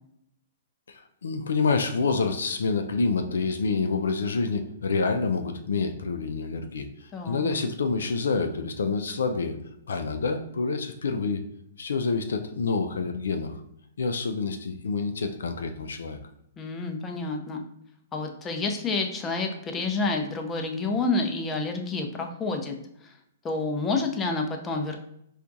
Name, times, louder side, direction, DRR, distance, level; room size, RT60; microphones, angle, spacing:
voice 1, 0.9-9.6 9.9-11.4 11.8-13.6 14.0-16.2, left 4 dB, 80° left, 6 dB, 0.3 m, -27 dB
voice 2, 7.1-7.4 16.6-17.6 18.1-23.1 23.4-25.0, left 3 dB, 20° left, 3 dB, 0.5 m, -29 dB
4.3 x 2.3 x 2.6 m, 0.76 s
hypercardioid pair, 125°, 0 cm